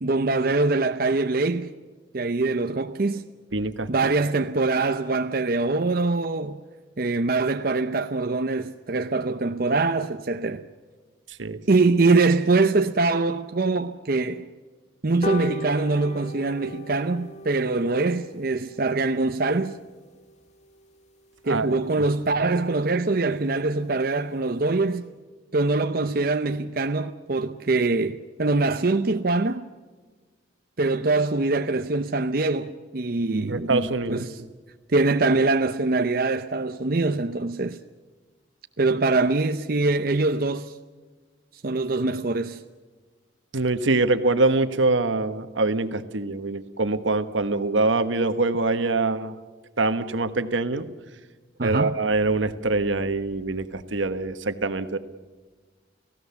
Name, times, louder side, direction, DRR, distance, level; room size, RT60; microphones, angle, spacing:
voice 1, 0.0-1.7 2.1-3.3 3.9-6.6 7.0-10.6 11.7-14.5 15.0-19.7 21.4-25.1 25.5-29.7 30.8-34.4 34.9-37.8 38.8-40.7 41.6-42.6 51.6-52.0, right 3 dB, 50° right, 0.7 m, -23 dB
voice 2, 3.5-3.9 11.4-11.6 21.5-21.8 33.5-34.3 43.5-49.4 49.8-50.9 51.6-55.0, right 3 dB, 80° right, 1.3 m, -24 dB
sound 1, 15.2-22.0 22.4-22.5 22.8-22.9 23.2-23.3 23.6-23.7 24.0-24.2 24.7-24.8, equal, 35° left, 2.1 m, -39 dB
30.0 x 17.0 x 7.0 m
head